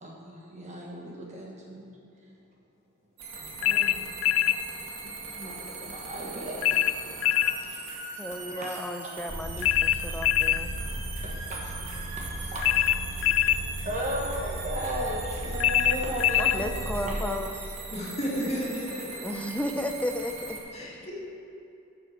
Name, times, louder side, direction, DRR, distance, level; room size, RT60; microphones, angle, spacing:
voice 1, 0.0-1.8 3.6-4.5 5.0-6.8 7.4-8.0 8.5-8.8 9.6-9.7 11.2-13.4 13.8-17.2, equal, 35° right, -3 dB, 1.4 m, -36 dB
sound 1, 3.2-20.6, right 3 dB, 80° right, 2.0 m, -40 dB
sound 2, 3.6-4.6 6.6-7.6 9.6-10.6 12.6-13.6 15.6-16.6, left 13 dB, 65° left, 0.3 m, -23 dB
voice 2, 8.2-10.7 16.4-17.6 19.2-20.6, left 1 dB, 5° left, 6 dB, 0.6 m, -33 dB
sound 3, 9.3-17.1, right 1 dB, 55° right, 1.9 m, -36 dB
voice 3, 17.9-19.3 20.7-21.1, equal, 30° left, -6 dB, 2.5 m, -32 dB
9.3 x 7.7 x 6.5 m, 2.7 s
head